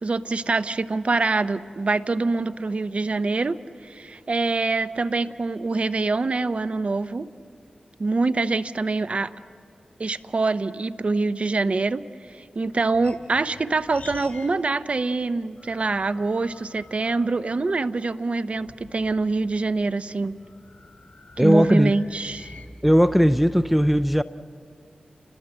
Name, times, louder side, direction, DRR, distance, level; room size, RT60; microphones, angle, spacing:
voice 1, 0.0-7.3 8.0-9.3 10.0-20.4 21.4-22.5, right 3 dB, 55° right, 0.8 m, -25 dB
sound 1, 12.3-14.6 14.9-18.0 18.5-22.7, left 3 dB, 65° left, 2.9 m, -48 dB
voice 2, 21.4-21.9 22.8-24.2, equal, 5° right, 0.5 m, -18 dB
29.5 x 21.0 x 7.8 m
cardioid pair, 55°, 3 cm